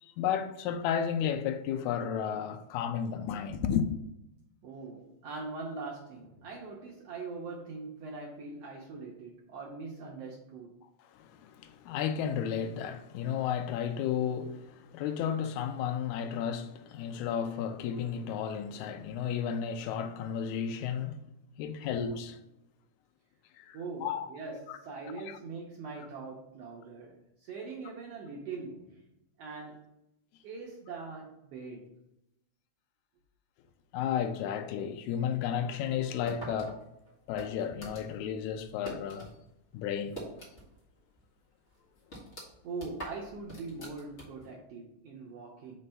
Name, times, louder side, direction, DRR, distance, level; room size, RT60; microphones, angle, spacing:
voice 1, 0.0-3.9 11.1-21.2 21.6-22.4 23.6-24.3 24.7-24.8 25.3-25.4 33.9-36.8 37.3-39.3 39.7-40.2, left 8 dB, 80° left, 1.8 m, -33 dB
voice 2, 4.6-10.7 21.8-21.9 23.7-29.0 29.4-29.8 30.4-32.0 42.6-45.8, right 4 dB, 70° right, 1.5 m, -42 dB
sound 1, 36.2-39.3 39.6-40.9 41.2-41.3 41.7-44.5, right 1 dB, 30° left, 1.5 m, -45 dB
5.3 x 3.3 x 5.4 m
omnidirectional pair, 3.7 m